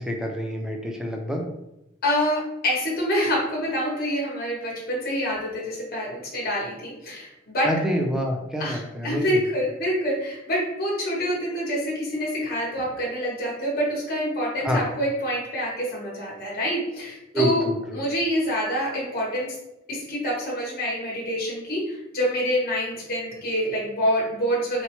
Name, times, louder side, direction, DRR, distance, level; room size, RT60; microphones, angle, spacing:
voice 1, 0.0-1.4 7.6-9.3 14.6-14.8 17.3-18.0, equal, 5° right, 1 dB, 0.4 m, -26 dB
voice 2, 2.0-7.7 8.6-17.6 17.9-19.5 19.9-24.8, equal, 50° left, -5 dB, 1.0 m, -26 dB
4.3 x 2.1 x 2.9 m, 0.88 s
head